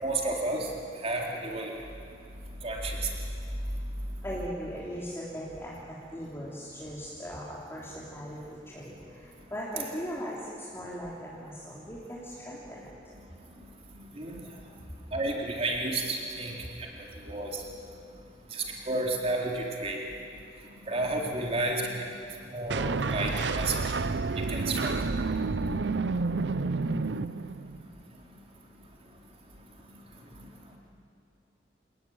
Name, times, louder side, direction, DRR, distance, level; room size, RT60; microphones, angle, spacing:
voice 1, 0.0-0.7 1.0-1.7 2.6-3.0 14.2-14.4 15.1-16.5 17.3-17.6 18.5-20.0 20.9-22.0 22.5-23.3 23.6-23.8 24.5-24.9, right 2 dB, 35° right, -1 dB, 4.0 m, -31 dB
voice 2, 4.2-8.4 8.7-8.9 9.5-10.4 10.7-12.9, equal, 15° left, -7 dB, 3.6 m, -38 dB
sound 1, 22.7-27.8, right 3 dB, 80° right, 0.7 m, -29 dB
28.5 x 19.5 x 9.6 m, 2.5 s
head